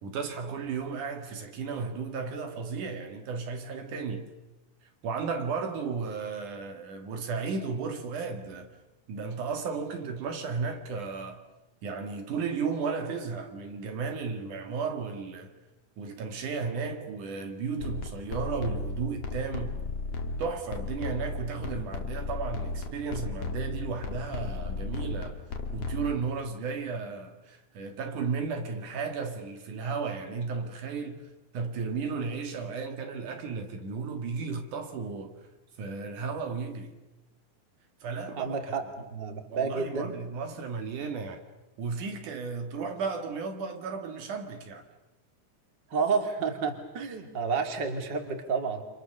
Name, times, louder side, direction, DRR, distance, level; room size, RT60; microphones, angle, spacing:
voice 1, 0.0-4.3 5.0-8.7 9.1-11.4 11.8-15.5 16.0-19.8 20.4-25.4 25.7-35.3 35.8-36.9 38.0-38.6 39.5-41.4 41.8-44.9, right 5 dB, 75° right, 3.4 m, -34 dB
sound 1, 17.8-26.2, left 3 dB, 50° left, 3.0 m, -35 dB
voice 2, 38.4-38.8 39.1-40.1 45.9-48.8, right 5 dB, 35° right, 3.0 m, -30 dB
29.5 x 26.5 x 6.7 m
omnidirectional pair, 3.7 m